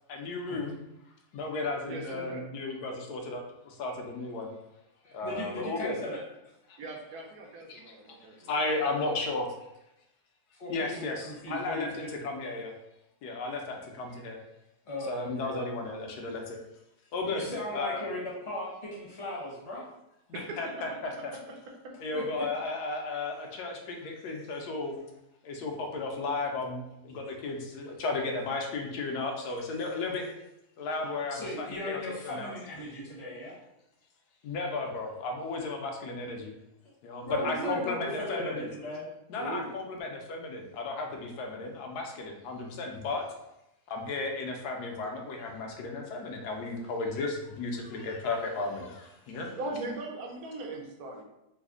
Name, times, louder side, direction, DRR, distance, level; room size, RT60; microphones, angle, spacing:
voice 1, 0.1-0.8 1.3-4.5 5.1-5.9 6.7-6.8 7.7-7.9 8.5-9.5 10.7-12.7 13.2-14.4 15.1-16.6 17.1-17.4 17.7-18.0 20.3-21.3 22.0-25.0 25.4-30.3 30.8-32.5 34.4-36.5 37.0-38.7 39.3-43.3 43.9-49.6, left 3 dB, 75° left, 2 dB, 1.1 m, -34 dB
voice 2, 1.9-2.4 5.5-5.7 6.8-8.7 13.7-13.8 20.3-20.7 21.0-21.5 21.8-21.9 37.4-37.9 39.4-39.7 49.5-51.2, right 2 dB, 75° right, 1 dB, 1.1 m, -39 dB
voice 3, 5.0-6.5 10.5-12.1 14.9-15.6 17.3-19.9 22.1-22.4 27.2-27.3 31.3-33.6 37.2-39.1, left 1 dB, 35° left, -4 dB, 0.7 m, -37 dB
3.2 x 2.0 x 3.6 m, 0.86 s
omnidirectional pair, 1.7 m